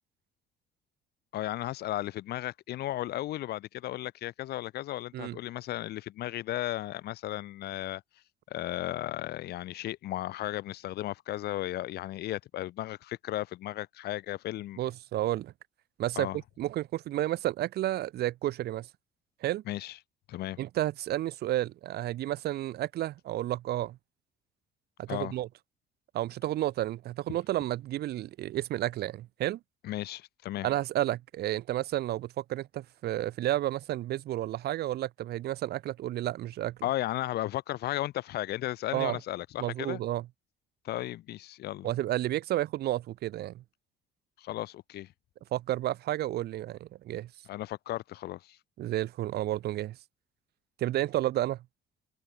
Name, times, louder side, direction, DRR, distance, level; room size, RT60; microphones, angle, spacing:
voice 1, 1.3-8.0 8.5-14.8 16.2-16.4 19.7-20.0 20.3-20.6 25.1-25.3 29.8-30.7 36.8-40.0 40.8-41.9 44.4-45.1 47.5-48.6, left 15 dB, 75° left, 3.6 m, -35 dB
voice 2, 14.8-15.5 16.0-18.9 19.4-19.6 20.6-24.0 25.0-25.5 26.1-29.6 30.6-36.8 38.9-39.2 39.6-40.3 41.8-43.6 45.5-47.3 48.8-50.0 50.8-51.6, right 14 dB, 70° right, 6.1 m, -31 dB
open air
cardioid pair, 110°, 17 cm